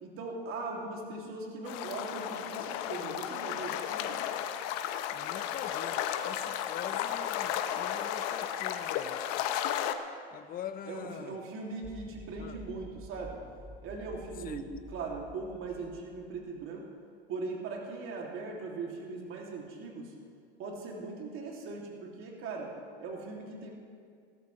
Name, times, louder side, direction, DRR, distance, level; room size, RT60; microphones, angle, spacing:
voice 1, 0.0-4.2 10.9-13.4 13.8-16.9 17.3-20.1 20.6-23.7, right 3 dB, 40° right, -1 dB, 2.8 m, -40 dB
sound 1, 1.6-9.9, left 10 dB, 50° left, 0.9 m, -34 dB
voice 2, 5.1-9.2 10.3-11.4 12.4-12.6 14.4-14.7, left 9 dB, 25° left, 11 dB, 0.8 m, -44 dB
sound 2, 11.8-16.7, equal, 5° right, 0.6 m, -50 dB
18.0 x 13.5 x 3.3 m, 2.2 s
hypercardioid pair, 110°, 32 cm